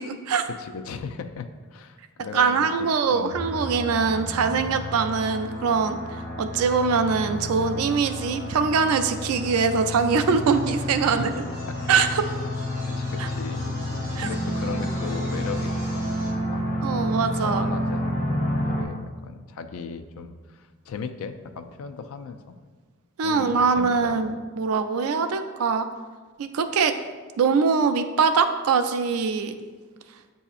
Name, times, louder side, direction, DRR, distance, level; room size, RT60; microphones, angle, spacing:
voice 1, 0.0-0.4 2.3-11.3 11.9-12.3 13.2-13.3 14.2-14.3 16.8-17.6 23.2-25.9 26.4-26.9 27.4-29.6, right 5 dB, 85° right, 8 dB, 0.4 m, -23 dB
voice 2, 0.6-3.4 11.0-11.3 11.7-11.8 12.9-13.8 14.2-16.2 16.5-16.6 17.3-22.6 23.2-24.4, left 5 dB, 75° left, 8 dB, 0.3 m, -37 dB
sound 1, 3.3-18.8, left 1 dB, 45° left, 0.9 m, -30 dB
sound 2, 8.6-16.3, right 1 dB, 15° right, 1.1 m, -46 dB
8.1 x 2.7 x 2.4 m, 1.4 s
head